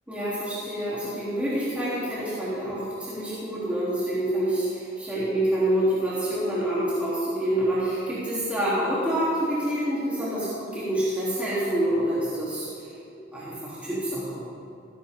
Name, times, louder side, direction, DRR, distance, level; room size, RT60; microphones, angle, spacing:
voice 1, 0.1-12.9 13.3-14.4, right 1 dB, 10° right, -11 dB, 3.5 m, -27 dB
17.0 x 15.5 x 3.8 m, 2.6 s
head